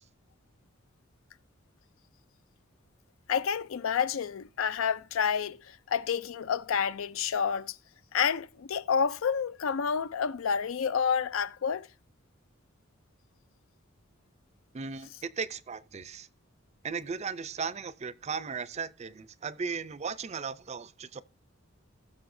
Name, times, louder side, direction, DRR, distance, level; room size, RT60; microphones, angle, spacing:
voice 1, 3.3-7.8 8.1-11.9, left 7 dB, 80° left, 0.4 m, -29 dB
voice 2, 14.7-16.3 16.8-21.2, right 5 dB, 35° right, 0.5 m, -36 dB
19.0 x 6.6 x 2.6 m
head